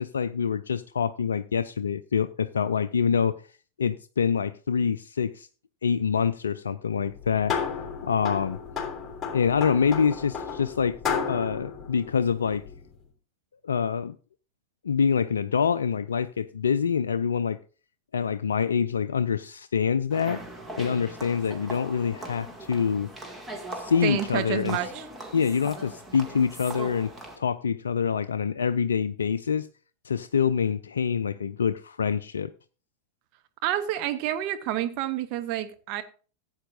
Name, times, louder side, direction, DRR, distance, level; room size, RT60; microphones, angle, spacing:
voice 1, 0.0-3.4 3.8-5.5 5.8-7.6 8.0-8.6 9.3-12.6 13.6-14.1 14.8-17.6 18.1-20.4 20.8-23.1 23.7-24.8 25.3-27.1 27.4-29.7 30.0-32.5, left 6 dB, 70° left, 0.4 m, -26 dB
sound 1, 7.0-12.9, left 6 dB, 15° left, 3.3 m, -33 dB
sound 2, 20.1-27.4, right 1 dB, 10° right, 2.3 m, -40 dB
voice 2, 24.0-25.1 33.6-36.0, right 12 dB, 40° right, 0.9 m, -29 dB
15.5 x 8.8 x 2.6 m
figure-of-eight pair, 90°, 0 cm